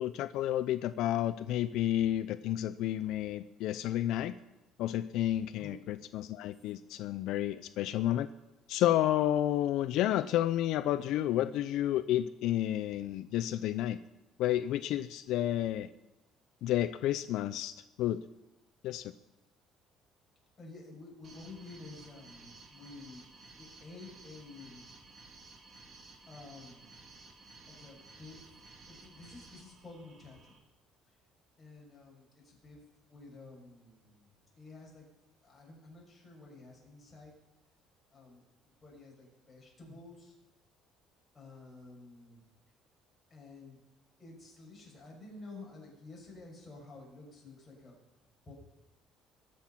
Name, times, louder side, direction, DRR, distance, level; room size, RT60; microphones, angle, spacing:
voice 1, 0.0-4.3 4.8-8.3 8.7-14.0 14.4-15.9 16.6-18.2 18.8-19.1, left 13 dB, 70° left, 12 dB, 0.5 m, -31 dB
voice 2, 20.6-23.3 23.6-24.9 26.3-26.9 27.7-28.6 28.9-30.5 31.6-35.0 35.4-37.3 38.1-38.4 38.8-40.3 41.3-42.4 43.3-43.8 44.2-48.0 48.4-48.5, left 3 dB, 15° left, -3 dB, 6.5 m, -51 dB
sound 1, 21.2-30.6, right 3 dB, 40° right, 2.3 m, -55 dB
22.0 x 7.7 x 5.7 m, 1.0 s
cardioid pair, 140°, 0 cm